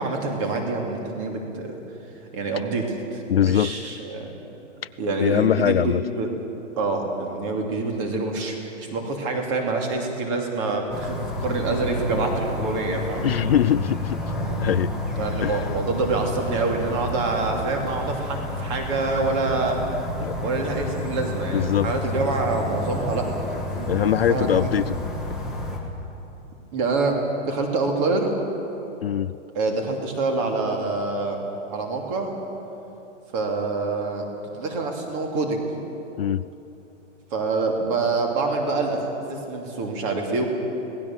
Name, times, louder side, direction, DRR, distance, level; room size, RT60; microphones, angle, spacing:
voice 1, 0.0-1.8 2.3-4.3 5.0-6.3 6.8-13.3 15.1-19.8 20.4-24.7 26.7-27.2 27.4-28.3 29.5-31.4 31.7-32.3 33.3-34.3 34.5-35.7 37.3-40.4, right 3 dB, 25° right, 2 dB, 2.8 m, -26 dB
voice 2, 3.3-3.8 5.2-6.0 13.2-14.2 14.6-14.9 15.4-15.7 20.2-20.3 21.5-21.9 23.9-25.0 29.0-29.3 36.2-36.5, left 10 dB, 55° left, 15 dB, 0.4 m, -22 dB
sound 1, 10.9-25.8, left 1 dB, ahead, 1.5 m, -30 dB
26.0 x 18.5 x 7.4 m, 3.0 s
hypercardioid pair, 170°, 37 cm